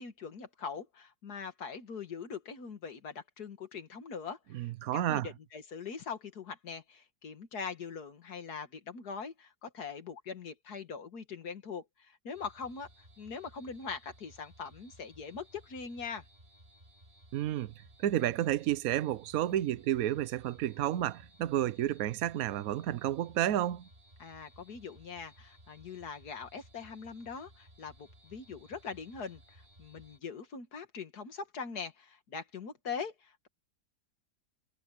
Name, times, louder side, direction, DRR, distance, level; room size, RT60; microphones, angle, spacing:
voice 1, 0.0-12.9 13.2-16.2 24.2-33.5, left 5 dB, 70° left, 2.2 m, -42 dB
voice 2, 4.5-5.3 17.3-17.7 18.0-23.9, right 12 dB, 65° right, 1.1 m, -31 dB
sound 1, 12.3-30.2, equal, 30° right, 3.0 m, -59 dB
omnidirectional pair, 1.7 m